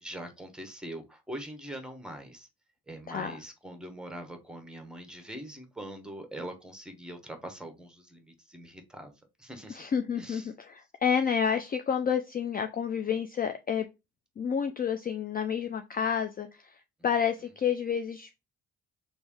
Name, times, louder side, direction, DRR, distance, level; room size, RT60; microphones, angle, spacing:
voice 1, 0.0-2.5 2.9-9.1 9.4-9.8 10.2-10.5, right 1 dB, 5° right, 0.9 m, -43 dB
voice 2, 9.7-13.9 14.4-18.5, left 7 dB, 30° left, 0.4 m, -30 dB
3.1 x 2.6 x 3.5 m
cardioid pair, 90°, 30 cm